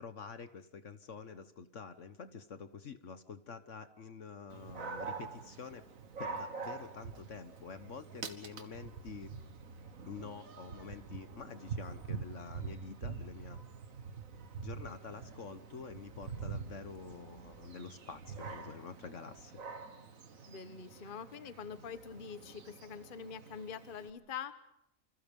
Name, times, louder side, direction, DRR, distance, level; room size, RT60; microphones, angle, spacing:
voice 1, 0.0-5.9 6.2-9.3 10.1-13.6 14.6-19.6, left 5 dB, 55° left, 11 dB, 1.4 m, -47 dB
Dog, 4.5-24.1, right 5 dB, 65° right, 2.0 m, -46 dB
voice 2, 20.5-24.5, left 7 dB, 40° left, 12 dB, 1.2 m, -45 dB
28.0 x 26.5 x 5.3 m, 0.79 s
omnidirectional pair, 1.6 m